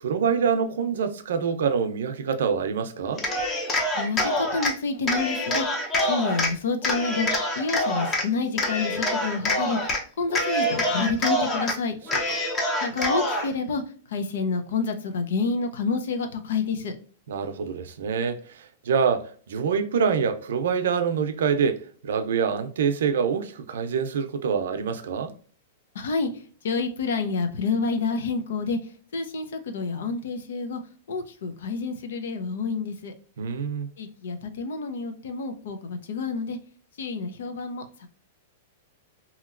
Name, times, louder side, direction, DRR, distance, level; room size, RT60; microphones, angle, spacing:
voice 1, 0.0-3.3 12.3-12.5 17.3-25.3 33.4-33.9, right 6 dB, 85° right, 0.5 m, -26 dB
Cheering, 3.1-4.7 5.1-6.5 6.8-8.2 8.6-10.0 10.3-11.7 12.1-13.5, left 1 dB, 20° left, 0.7 m, -26 dB
voice 2, 3.9-5.8 6.1-7.3 7.5-12.0 12.8-13.8 14.1-16.9 25.9-28.8 29.1-30.8 31.1-33.1 34.0-36.6 37.0-38.1, left 4 dB, 80° left, 0.6 m, -28 dB
2.9 x 2.8 x 2.4 m
supercardioid pair, 155°, 0 cm